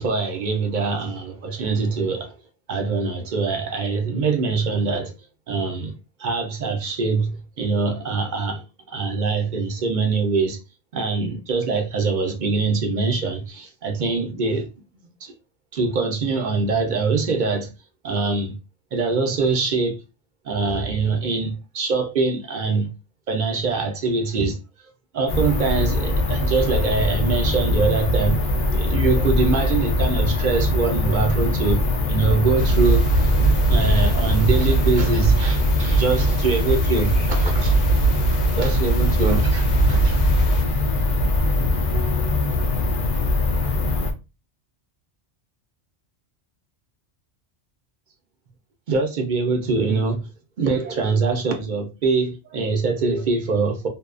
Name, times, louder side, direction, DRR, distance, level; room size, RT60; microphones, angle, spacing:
voice 1, 0.0-2.3 2.7-5.1 5.5-5.9 6.2-10.6 10.9-14.7 15.2-15.3 15.7-17.7 18.0-18.5 18.9-20.0 20.4-22.9 23.3-24.6 25.1-33.1 33.7-37.7 38.3-40.1 48.9-50.3 50.6-53.9, right 4 dB, 55° right, 0.5 m, -23 dB
sound 1, 25.3-44.1, left 2 dB, 55° left, 0.6 m, -22 dB
sound 2, 32.6-40.6, right 3 dB, 75° left, 1.1 m, -21 dB
2.6 x 2.2 x 2.4 m
omnidirectional pair, 1.1 m